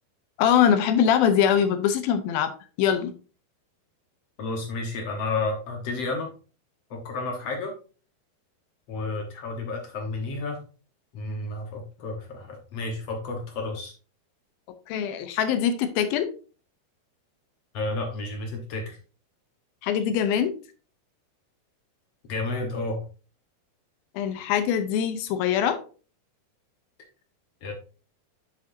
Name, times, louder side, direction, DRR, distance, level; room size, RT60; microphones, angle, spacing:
voice 1, 0.4-2.5 2.8-3.1 14.9-16.3 19.8-20.5 24.2-25.8, left 8 dB, 80° left, 9 dB, 2.6 m, -22 dB
voice 2, 4.4-6.3 6.9-7.7 8.9-10.6 11.1-13.9 17.7-19.0 22.3-23.0 27.6-27.7, left 3 dB, 60° left, 2 dB, 1.7 m, -31 dB
7.6 x 7.4 x 2.6 m, 0.36 s
omnidirectional pair, 4.4 m